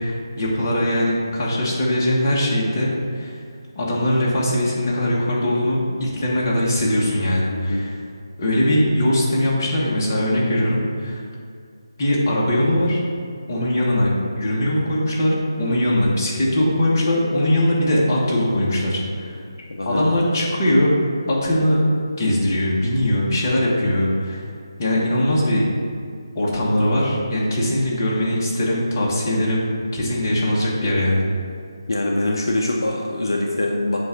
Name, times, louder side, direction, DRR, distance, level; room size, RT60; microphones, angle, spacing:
voice 1, 0.0-3.4 3.7-7.9 8.4-11.2 12.0-13.0 13.5-19.4 19.8-21.0 21.3-21.8 22.2-24.4 24.8-25.6 26.3-31.2, left 1 dB, 30° left, -5 dB, 1.4 m, -21 dB
voice 2, 7.5-7.8 19.7-20.4 31.9-34.0, left 1 dB, 70° left, -1 dB, 0.7 m, -23 dB
7.6 x 2.6 x 5.7 m, 2.2 s
figure-of-eight pair, 160°, 2 cm